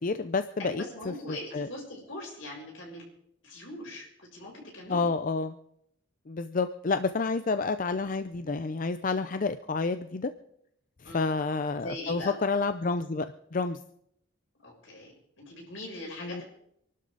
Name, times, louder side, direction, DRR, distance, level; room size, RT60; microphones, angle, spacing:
voice 1, 0.0-1.7 4.9-5.5 6.3-10.3 11.0-13.3 13.5-13.8 16.2-16.4, left 4 dB, 45° left, 10 dB, 0.5 m, -29 dB
voice 2, 0.6-3.0 3.4-4.1 4.3-5.1 11.0-11.3 11.8-12.3 14.6-15.1 15.4-16.4, left 1 dB, 75° left, -2 dB, 7.2 m, -41 dB
27.0 x 12.0 x 4.0 m, 0.74 s
head